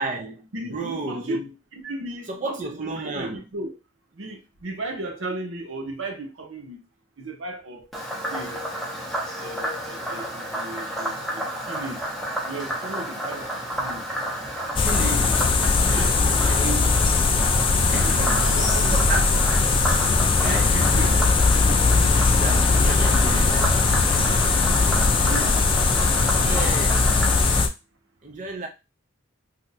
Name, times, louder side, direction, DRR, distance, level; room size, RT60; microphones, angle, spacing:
voice 1, 0.0-1.5 2.3-3.4 14.7-15.4 16.0-17.0 17.9-18.6 18.9-19.4 20.4-21.3 22.0-24.7 26.4-27.1 28.2-28.7, right 3 dB, 40° right, 0.5 m, -33 dB
voice 2, 0.5-1.4 1.8-3.8 4.2-6.8 7.2-7.9 8.3-8.6 9.4-12.1 12.5-13.5 13.8-14.1 15.6-16.2 18.0-19.0 20.4-21.2 25.2-25.7, right 2 dB, 85° right, 0.8 m, -35 dB
Frog, 7.9-27.6, equal, ahead, 0.7 m, -31 dB
sound 1, 14.8-27.7, left 4 dB, 25° left, 0.3 m, -20 dB
2.6 x 2.2 x 4.0 m
head